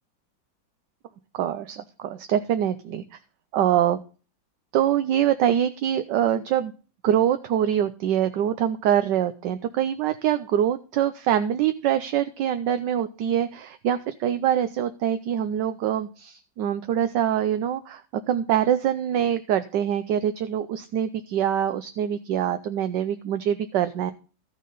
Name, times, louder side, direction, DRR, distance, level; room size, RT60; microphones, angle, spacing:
voice 1, 1.3-3.0 3.5-4.0 4.7-6.7 7.0-24.1, right 10 dB, 70° right, 10 dB, 1.3 m, -24 dB
14.0 x 6.4 x 3.9 m, 0.36 s
omnidirectional pair, 2.1 m